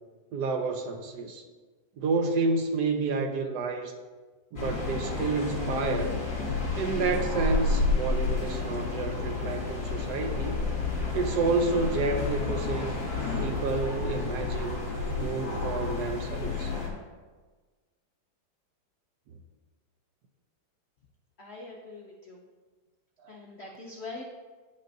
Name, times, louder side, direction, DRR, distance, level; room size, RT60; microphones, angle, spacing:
voice 1, 0.3-1.4 2.0-3.9 4.5-6.2 6.7-10.6 11.1-13.0 13.4-14.8 15.2-16.7 23.2-23.4, right 3 dB, 70° right, 5 dB, 1.1 m, -30 dB
sound 1, 4.6-16.9, left 3 dB, 55° left, 2.4 m, -30 dB
voice 2, 21.4-22.4 23.3-24.2, left 3 dB, 90° left, 0 dB, 0.5 m, -43 dB
10.0 x 5.3 x 2.6 m, 1.4 s
omnidirectional pair, 2.0 m